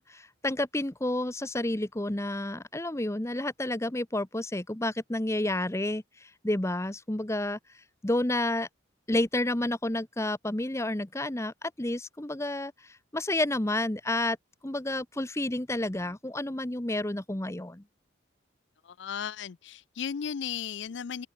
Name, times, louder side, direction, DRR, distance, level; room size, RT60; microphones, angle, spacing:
voice 1, 0.0-7.6 8.0-8.7 9.1-14.4 14.6-17.8, left 1 dB, 15° left, 0.9 m, -30 dB
voice 2, 18.8-21.3, left 7 dB, 60° left, 0.4 m, -35 dB
open air
head